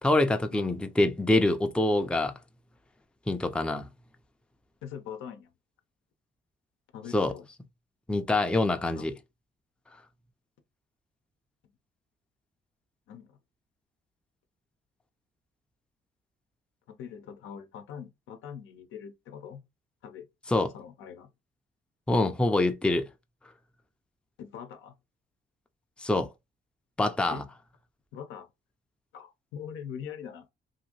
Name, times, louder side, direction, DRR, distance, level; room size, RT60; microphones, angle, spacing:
voice 1, 0.0-2.3 3.3-3.9 7.1-7.3 8.1-9.1 20.5-20.7 22.1-23.1 26.0-26.3 27.0-27.4, left 2 dB, 5° left, 0.4 m, -25 dB
voice 2, 4.8-5.5 6.9-7.5 8.8-9.1 13.1-13.4 16.9-19.6 20.0-20.3 20.7-21.3 24.4-25.0 27.3-27.5 28.1-28.5 29.1-30.5, left 8 dB, 85° left, 0.7 m, -42 dB
2.8 x 2.5 x 2.8 m
cardioid pair, 90°, 20 cm